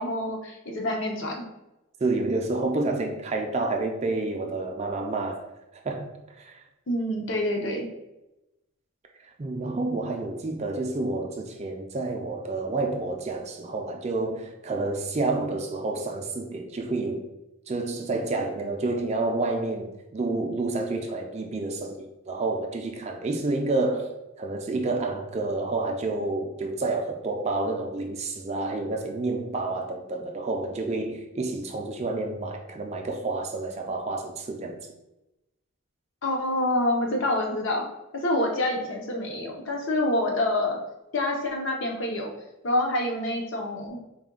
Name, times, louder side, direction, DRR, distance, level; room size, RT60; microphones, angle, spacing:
voice 1, 0.0-1.4 6.9-7.9 36.2-37.9 38.2-40.8 41.1-42.3 42.6-44.0, left 1 dB, 60° left, 0.7 m, -27 dB
voice 2, 2.0-5.5 5.8-6.1 6.4-6.6 9.4-17.3 17.7-24.1 24.4-34.8, right 2 dB, 30° right, 0.4 m, -29 dB
4.2 x 2.2 x 3.7 m
head